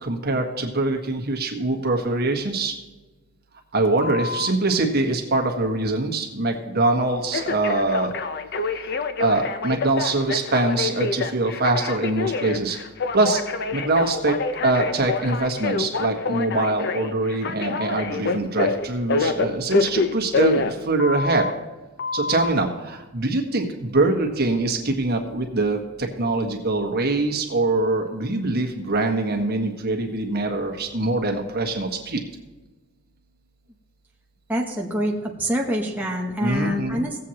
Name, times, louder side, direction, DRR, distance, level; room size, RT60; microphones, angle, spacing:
voice 1, 0.0-2.7 3.7-8.1 9.2-12.8 13.1-13.4 13.7-14.3 14.6-21.4 22.1-25.8 26.2-32.2 36.4-37.0, right 2 dB, 50° right, 3 dB, 1.5 m, -23 dB
Telephone, 4.0-4.5 7.3-21.5 22.0-22.5, left 4 dB, 55° left, 0.6 m, -26 dB
voice 2, 34.5-37.2, equal, 10° right, -2 dB, 0.8 m, -26 dB
17.5 x 7.7 x 2.9 m, 1.2 s
head